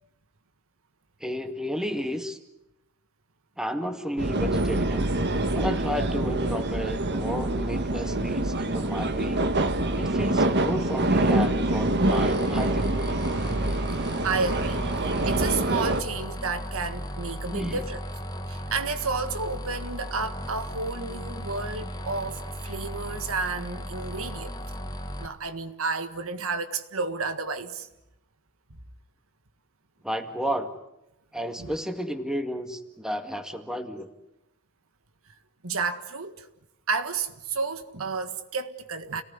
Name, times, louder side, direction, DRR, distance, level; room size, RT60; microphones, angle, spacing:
voice 1, 1.2-2.4 3.6-5.1 5.5-9.4 9.9-12.9 17.5-17.8 30.0-30.7 31.3-34.1, equal, 5° right, 2.0 m, -32 dB
sound 1, 4.2-16.0, right 2 dB, 50° right, 1.8 m, -25 dB
sound 2, 12.0-25.3, equal, 20° left, 1.6 m, -36 dB
voice 2, 14.2-18.0 18.5-24.6 25.2-27.9 31.6-31.7 35.6-36.5 36.9-39.2, right 4 dB, 70° right, 1.7 m, -31 dB
29.5 x 19.0 x 9.7 m
head